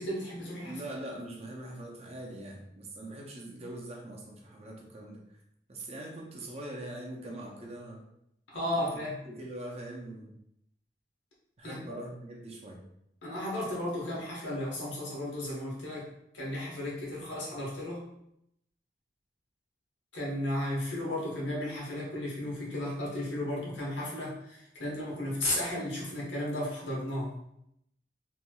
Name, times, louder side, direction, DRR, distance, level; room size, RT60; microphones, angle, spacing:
voice 1, 0.0-0.8 8.5-9.2 11.6-11.8 13.2-16.1 16.3-18.1 20.1-27.4, left 1 dB, 90° left, -5 dB, 1.2 m, -34 dB
voice 2, 0.6-5.4 5.7-8.0 8.7-8.8 9.2-10.4 11.6-12.9, right 1 dB, 35° right, -1 dB, 0.5 m, -42 dB
3.1 x 3.0 x 2.3 m, 0.78 s
head